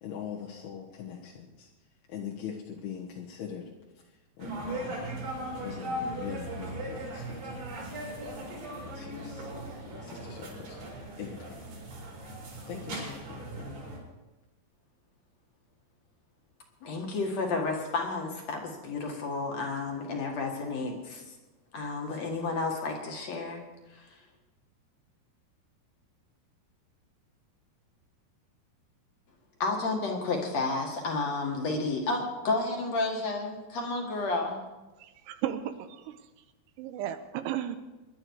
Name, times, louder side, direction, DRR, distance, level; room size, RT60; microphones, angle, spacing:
voice 1, 0.0-1.7 2.1-3.7 4.4-5.2 5.6-7.6 8.8-9.5 9.9-10.8 11.2-11.5 12.7-13.9, left 8 dB, 75° left, -3 dB, 3.3 m, -42 dB
sound 1, 4.4-14.0, right 1 dB, 70° right, 6.9 m, -38 dB
voice 2, 16.8-21.4 21.7-23.6 23.9-24.2 29.6-34.6, left 3 dB, 50° left, 1 dB, 2.5 m, -31 dB
voice 3, 35.0-36.2 36.8-37.8, right 11 dB, 90° right, 9 dB, 3.0 m, -34 dB
22.5 x 11.0 x 4.7 m, 1.1 s
omnidirectional pair, 4.7 m